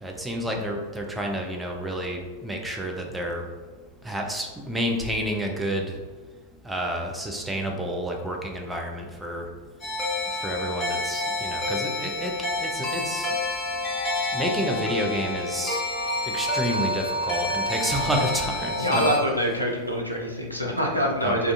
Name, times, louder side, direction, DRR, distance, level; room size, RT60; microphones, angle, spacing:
voice 1, 0.0-3.4 4.1-5.9 6.7-9.5 10.4-12.3 12.6-13.3 14.3-15.8 16.3-19.1 21.2-21.5, equal, 5° right, 1 dB, 0.4 m, -29 dB
sound 1, 9.8-19.2, left 1 dB, 20° left, 0.8 m, -28 dB
voice 2, 18.8-21.5, equal, 90° left, -1 dB, 0.4 m, -25 dB
2.4 x 2.2 x 2.5 m, 1.4 s
figure-of-eight pair, 90°, 0 cm